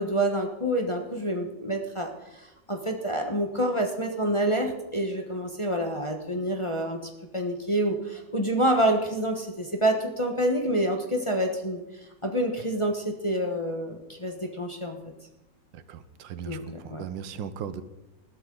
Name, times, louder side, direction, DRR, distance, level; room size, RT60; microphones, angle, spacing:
voice 1, 0.0-7.0 7.3-15.0 16.5-16.6 16.9-17.0, right 1 dB, 20° left, 2 dB, 1.0 m, -27 dB
voice 2, 15.7-17.8, right 8 dB, 90° right, 13 dB, 1.6 m, -38 dB
20.0 x 12.5 x 3.9 m, 0.97 s
omnidirectional pair, 2.0 m